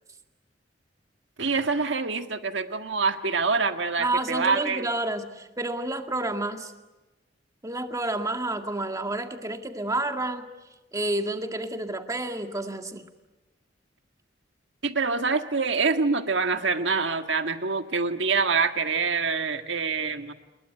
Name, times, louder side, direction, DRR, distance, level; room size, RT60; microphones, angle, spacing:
voice 1, 1.4-4.9 14.8-20.3, right 4 dB, 65° right, 7 dB, 1.7 m, -25 dB
voice 2, 4.0-6.7 7.6-10.5 10.9-13.1, right 2 dB, 20° right, 5 dB, 2.0 m, -30 dB
28.5 x 21.5 x 9.4 m, 1.1 s
head